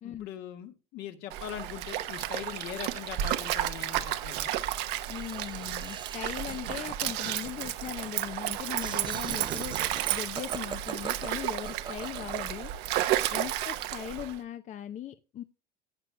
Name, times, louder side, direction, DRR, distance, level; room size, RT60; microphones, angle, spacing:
voice 1, 0.0-4.5 13.3-13.4, left 10 dB, 65° left, 6 dB, 1.6 m, -41 dB
Stream, 1.3-14.4, right 13 dB, 65° right, 0.9 m, -32 dB
voice 2, 5.1-12.7 13.3-15.4, left 11 dB, 40° left, 10 dB, 0.6 m, -39 dB
Laughter, 5.1-12.7, right 7 dB, 25° right, 0.5 m, -42 dB
14.0 x 8.2 x 2.2 m, 0.31 s
supercardioid pair, 100°, 18 cm